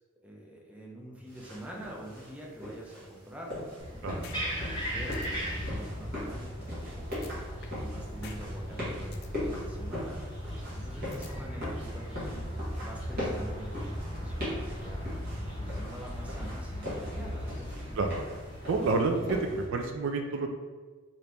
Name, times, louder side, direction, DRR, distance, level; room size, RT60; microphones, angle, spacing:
voice 1, 0.2-7.3 7.7-10.2 10.7-15.0 15.6-18.0, right 1 dB, 5° right, -3 dB, 0.5 m, -45 dB
sound 1, 1.3-19.6, left 1 dB, 45° right, 1.2 m, -41 dB
sound 2, 3.8-19.8, equal, 20° left, 1.1 m, -38 dB
sound 3, 4.2-4.4 4.7-4.8 5.1-5.3 7.1-7.9 8.2-8.4 8.7-9.3 11.1-11.9, left 6 dB, 50° left, 0.3 m, -48 dB
voice 2, 18.7-20.5, right 3 dB, 65° right, 4 dB, 0.3 m, -29 dB
2.9 x 2.5 x 3.3 m, 1.4 s
head